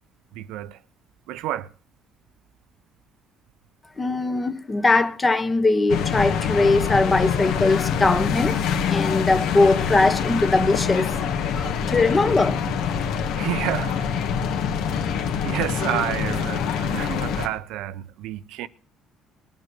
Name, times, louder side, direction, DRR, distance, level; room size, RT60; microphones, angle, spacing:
voice 1, 0.3-0.8 1.3-1.7 13.4-14.1 15.4-18.7, right 13 dB, 80° right, 0.8 m, -29 dB
voice 2, 4.0-11.2 11.5-12.6, left 3 dB, 15° left, 1.0 m, -21 dB
sound 1, 5.9-17.5, left 7 dB, 70° left, 1.6 m, -25 dB
20.0 x 9.1 x 6.8 m
cardioid pair, 160°, 0 cm